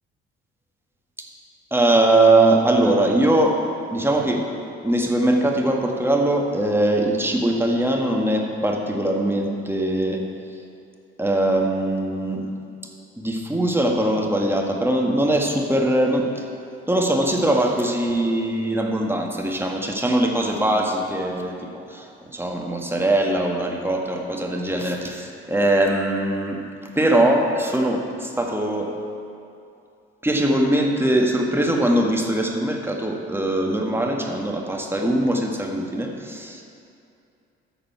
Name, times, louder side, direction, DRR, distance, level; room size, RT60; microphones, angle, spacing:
voice 1, 1.7-3.6 3.9-4.4 4.8-10.2 11.2-12.4 13.2-16.4 16.9-26.6 27.0-28.9 30.2-36.6, right 1 dB, 10° right, 1 dB, 1.6 m, -21 dB
13.0 x 6.8 x 4.6 m, 2.5 s
figure-of-eight pair, 45°, 30 cm